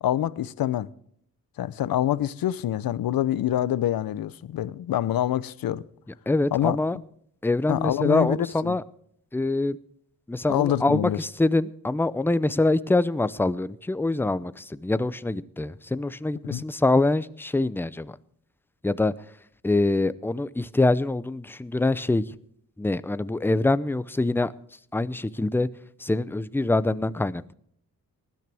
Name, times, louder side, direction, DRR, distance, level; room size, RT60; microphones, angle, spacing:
voice 1, 0.0-0.9 1.6-5.8 6.5-6.8 7.7-8.4 8.6-8.8 10.5-11.2 16.5-16.6, left 12 dB, 75° left, 0.7 m, -26 dB
voice 2, 6.3-7.0 7.4-8.8 9.3-9.8 10.3-18.2 18.8-19.1 19.6-22.2 22.8-24.5 24.9-25.7 26.0-27.5, left 2 dB, 5° left, 0.6 m, -24 dB
19.5 x 12.5 x 3.4 m
cardioid pair, 90°, 35 cm